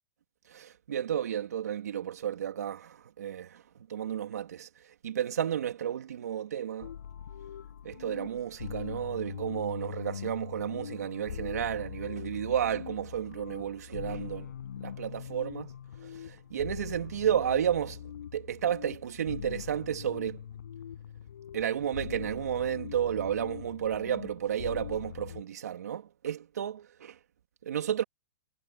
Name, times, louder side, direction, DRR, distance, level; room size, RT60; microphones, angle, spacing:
voice 1, 0.5-3.5 3.9-4.7 5.0-6.9 7.8-14.5 14.8-15.7 16.3-18.0 18.3-20.4 21.5-27.1 27.6-28.0, right 9 dB, 85° right, 3.1 m, -32 dB
sound 1, 6.8-25.4, left 9 dB, 90° left, 7.3 m, -42 dB
hypercardioid pair, 170°, 8 cm